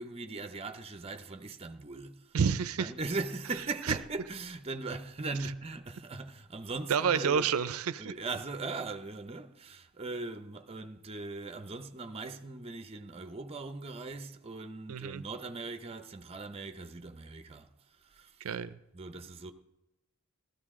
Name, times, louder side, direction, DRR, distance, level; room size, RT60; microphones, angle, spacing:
voice 1, 0.0-2.4 2.8-7.5 8.0-17.7 18.0-18.4 18.9-19.5, right 3 dB, 30° right, 0.7 m, -39 dB
voice 2, 2.3-2.9 6.9-8.1 14.9-15.2 18.4-18.7, right 6 dB, 85° right, 0.5 m, -29 dB
17.5 x 13.5 x 3.7 m
head